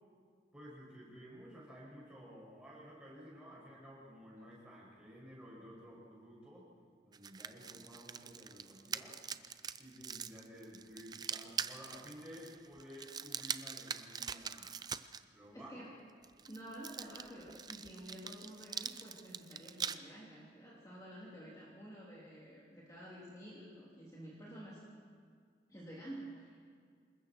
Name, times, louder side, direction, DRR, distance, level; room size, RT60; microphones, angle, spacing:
voice 1, 0.5-6.6 7.0-9.2 9.8-14.7 15.3-15.8, equal, 5° right, -5 dB, 6.5 m, -53 dB
sound 1, 7.1-15.2 16.2-20.0, right 7 dB, 20° right, 0.5 m, -43 dB
voice 2, 15.5-16.1 16.5-24.8 25.7-26.6, right 1 dB, 20° left, -6 dB, 3.2 m, -50 dB
27.0 x 21.0 x 4.6 m, 2.1 s
head